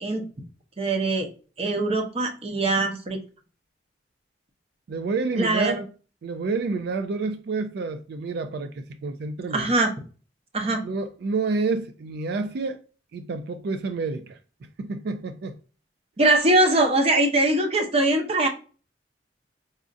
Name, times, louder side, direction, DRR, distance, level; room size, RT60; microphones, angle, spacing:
voice 1, 0.8-1.3 1.6-3.2 5.3-5.8 9.5-9.9 10.5-10.8 16.2-18.5, right 2 dB, 35° right, 0.7 m, -22 dB
voice 2, 4.9-5.8 6.2-9.8 10.8-12.8 13.1-14.4 14.8-15.6, right 4 dB, 60° right, 0.3 m, -29 dB
4.1 x 2.4 x 2.4 m
head